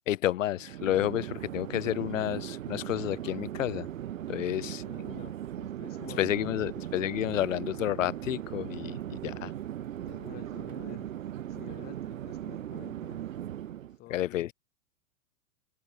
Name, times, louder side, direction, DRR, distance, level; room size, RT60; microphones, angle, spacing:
voice 1, 0.1-3.9 4.3-4.8 6.2-9.5 14.1-14.5, left 13 dB, 65° left, 0.6 m, -30 dB
Chatter / Fixed-wing aircraft airplane, 0.5-14.0, right 11 dB, 70° right, 0.9 m, -38 dB
voice 2, 4.4-6.7 10.0-11.1 11.5-13.3 14.0-14.5, left 16 dB, 25° left, 0.8 m, -49 dB
figure-of-eight pair, 105°, 42 cm